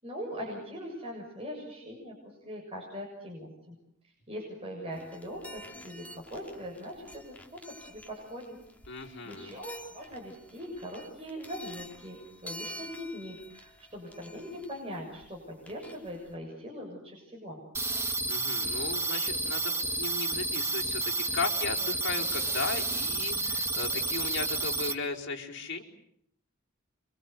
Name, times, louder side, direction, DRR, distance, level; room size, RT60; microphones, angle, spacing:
voice 1, 0.0-2.2 2.4-3.8 4.3-8.6 9.0-17.6, equal, 30° right, -1 dB, 7.3 m, -41 dB
sound 1, 4.9-16.4, equal, 10° left, 3.0 m, -49 dB
voice 2, 8.9-9.5 18.3-25.8, left 3 dB, 60° left, 0 dB, 4.7 m, -36 dB
sound 2, 17.7-24.9, right 2 dB, 15° right, 1.9 m, -30 dB
28.5 x 25.5 x 8.1 m, 0.69 s
head